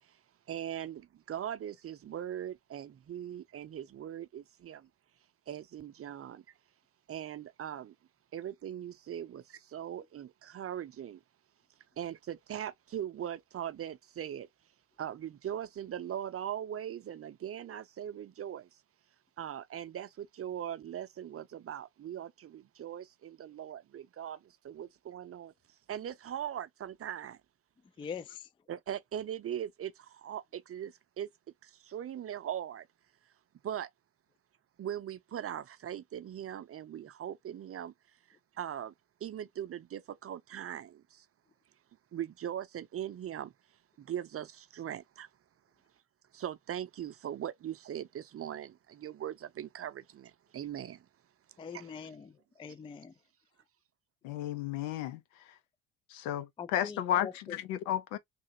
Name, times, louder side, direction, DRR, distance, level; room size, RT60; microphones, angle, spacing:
voice 1, 0.5-4.9 5.5-6.4 7.1-7.9 8.3-11.2 12.0-14.5 15.0-18.8 19.4-25.5 25.9-27.4 28.7-31.3 31.6-32.9 33.6-33.9 34.8-37.9 38.5-38.9 39.2-41.2 42.1-43.5 44.0-45.3 46.3-51.1 51.7-52.0, right 10 dB, 35° right, 0.6 m, -40 dB
voice 2, 28.0-28.5 51.6-52.3 52.6-53.1 56.6-57.6, left 6 dB, 15° left, 0.4 m, -43 dB
voice 3, 54.2-55.2 56.1-58.2, left 11 dB, 75° left, 0.8 m, -33 dB
3.3 x 2.8 x 2.8 m
hypercardioid pair, 65°, 40 cm